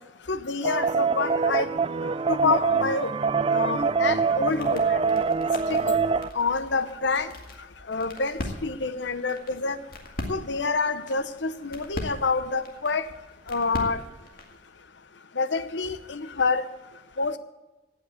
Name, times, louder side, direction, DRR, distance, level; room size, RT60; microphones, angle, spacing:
voice 1, 0.3-1.7 2.3-3.1 3.5-5.0 5.7-5.9 6.3-7.3 7.9-9.8 10.3-13.0 13.5-14.0 15.4-16.6 17.2-17.4, left 4 dB, 70° left, 13 dB, 0.8 m, -27 dB
sound 1, 0.6-6.3, right 5 dB, 30° right, 0.3 m, -24 dB
sound 2, 3.7-14.6, left 1 dB, 50° left, 2.0 m, -41 dB
17.0 x 6.0 x 8.1 m, 1.1 s
head